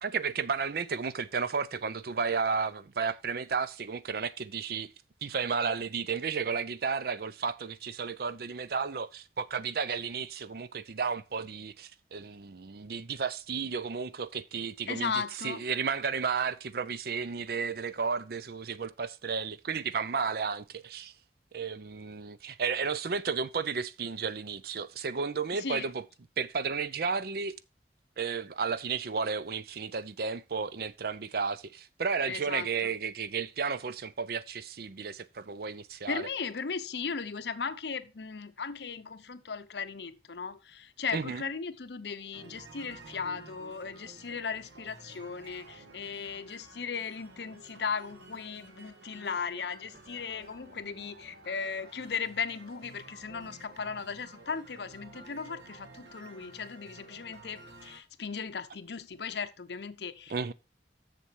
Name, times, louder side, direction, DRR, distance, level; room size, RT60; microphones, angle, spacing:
voice 1, 0.0-4.9 5.2-21.1 21.5-26.0 26.4-27.5 28.2-36.3 41.1-41.4 60.3-60.5, right 5 dB, 60° right, 0.5 m, -33 dB
voice 2, 14.9-15.6 25.5-25.9 32.3-32.9 36.1-60.5, left 5 dB, 70° left, 0.7 m, -37 dB
sound 1, 42.3-58.0, right 3 dB, 90° right, 1.7 m, -52 dB
7.1 x 6.9 x 4.6 m
head